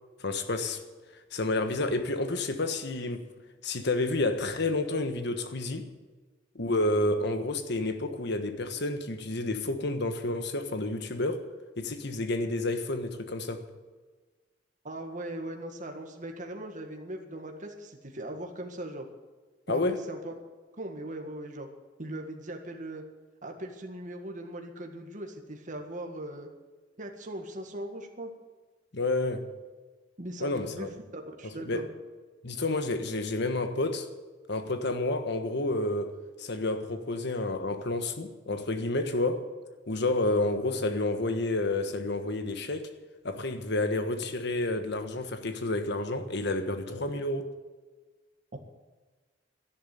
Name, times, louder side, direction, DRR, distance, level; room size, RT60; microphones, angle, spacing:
voice 1, 0.2-0.8 1.1-3.3 3.6-5.9 6.5-11.5 11.8-13.7 19.7-20.0 28.9-29.5 30.4-30.9 31.4-31.9 32.4-34.1 34.5-39.5 39.9-42.9 43.2-47.5, left 2 dB, 60° left, 1.4 m, -30 dB
voice 2, 14.8-19.1 19.7-19.8 20.1-20.3 20.8-21.7 22.0-23.0 23.4-26.5 27.0-28.3 30.2-30.9 31.1-31.9 48.5-48.6, right 1 dB, 40° right, 1.8 m, -39 dB
12.0 x 11.0 x 9.3 m
head